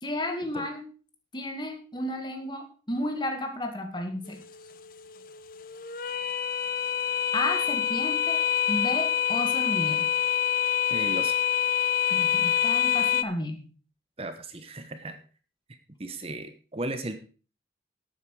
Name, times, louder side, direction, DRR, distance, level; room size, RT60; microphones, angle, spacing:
voice 1, 0.0-0.9 1.3-4.4 7.3-8.4 8.7-10.1 12.1-13.7, left 1 dB, 25° left, 5 dB, 2.0 m, -32 dB
sound 1, 4.3-13.2, left 10 dB, 50° left, 0.6 m, -26 dB
voice 2, 10.9-11.4 14.2-15.2 16.0-17.1, right 2 dB, 30° right, 9 dB, 1.0 m, -35 dB
12.0 x 8.9 x 4.8 m, 0.38 s
head